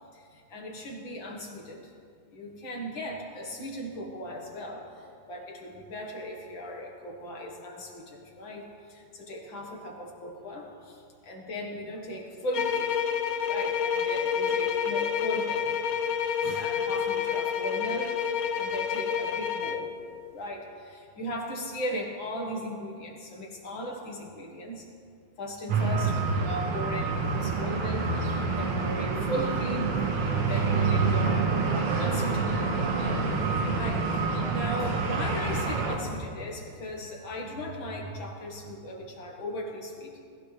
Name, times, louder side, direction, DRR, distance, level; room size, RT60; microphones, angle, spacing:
voice 1, 0.5-1.9 2.3-8.6 8.9-10.7 11.3-13.0 13.4-15.8 16.2-19.9 20.3-24.8 25.4-33.4 33.7-40.1, equal, 60° left, 0 dB, 2.4 m, -37 dB
sound 1, 12.5-19.9, left 7 dB, 85° left, 0.7 m, -28 dB
sound 2, 25.7-36.0, right 4 dB, 90° right, 2.3 m, -27 dB
20.0 x 15.5 x 3.4 m, 2.4 s
omnidirectional pair, 2.4 m